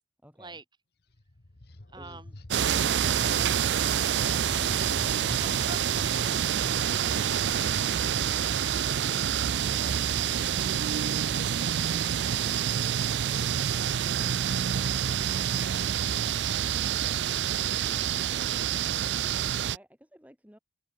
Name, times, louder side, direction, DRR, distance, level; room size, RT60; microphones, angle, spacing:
voice 1, 0.2-0.6 2.0-2.2 19.7-20.6, equal, 10° right, 5.8 m, -56 dB
sound 1, 1.1-13.0, left 3 dB, 60° left, 1.5 m, -46 dB
voice 2, 1.9-2.3 5.7-6.3, right 3 dB, 25° right, 7.8 m, -47 dB
sound 2, 2.5-19.8, right 9 dB, 75° right, 0.4 m, -27 dB
head